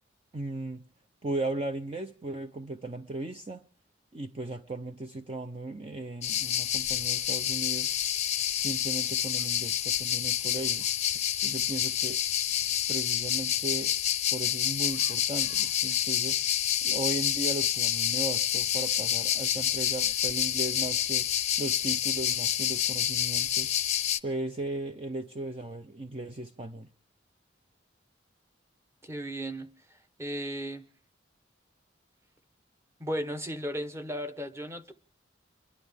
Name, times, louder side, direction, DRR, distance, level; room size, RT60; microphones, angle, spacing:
voice 1, 0.3-0.8 1.2-3.6 4.1-7.9 8.5-10.9 11.4-12.2 12.9-13.9 14.3-16.4 16.8-23.7 24.2-26.9, right 2 dB, 30° right, 0.6 m, -36 dB
sound 1, 6.2-24.2, left 10 dB, 35° left, 0.6 m, -28 dB
voice 2, 29.0-30.8 33.0-34.9, equal, 15° right, 1.0 m, -36 dB
30.0 x 11.5 x 3.5 m
head